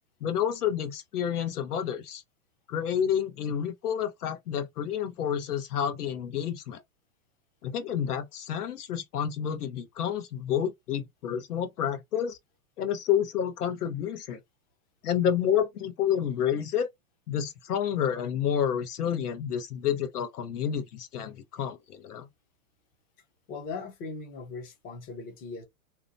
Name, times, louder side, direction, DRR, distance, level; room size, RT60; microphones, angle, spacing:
voice 1, 0.2-2.2 2.7-6.8 7.6-12.4 12.8-14.4 15.0-16.9 17.3-22.3, left 9 dB, 85° left, 1.0 m, -29 dB
voice 2, 23.5-25.6, left 4 dB, 20° left, 0.5 m, -39 dB
2.9 x 2.1 x 2.6 m
hypercardioid pair, 145°, 44 cm